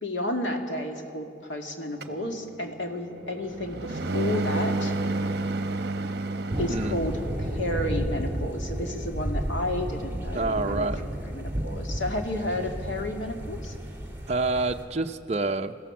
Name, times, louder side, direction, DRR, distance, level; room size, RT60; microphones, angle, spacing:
voice 1, 0.0-4.9 6.6-10.9 11.2-13.8, left 1 dB, 85° left, 3 dB, 2.4 m, -32 dB
sound 1, 2.0-7.6, right 2 dB, 55° right, 1.0 m, -30 dB
sound 2, 6.5-14.9, equal, 10° right, 2.7 m, -32 dB
voice 2, 10.3-11.0 14.3-15.8, right 3 dB, 35° right, 3 dB, 0.7 m, -27 dB
27.0 x 16.0 x 7.2 m, 2.4 s
head